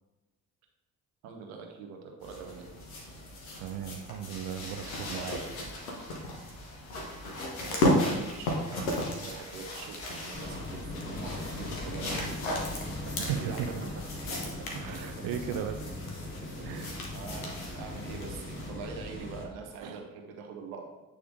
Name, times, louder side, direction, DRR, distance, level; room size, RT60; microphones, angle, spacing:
voice 1, 1.2-2.6 7.6-12.3 13.4-14.0 17.1-20.9, right 5 dB, 85° right, 2 dB, 0.9 m, -43 dB
sound 1, 2.2-18.7 19.7-19.8, left 1 dB, 85° left, 1.0 m, -35 dB
voice 2, 3.6-5.4 13.2-13.7 14.7-16.0 16.6-17.0 19.8-20.0, right 9 dB, 60° right, 6 dB, 0.5 m, -36 dB
sound 2, 10.3-19.4, left 2 dB, 30° left, 1.6 m, -40 dB
sound 3, 12.4-12.7 13.1-15.8 16.2-17.0, right 4 dB, 30° right, 0.9 m, -48 dB
8.5 x 3.5 x 3.6 m, 1.1 s
hypercardioid pair, 40°, 40 cm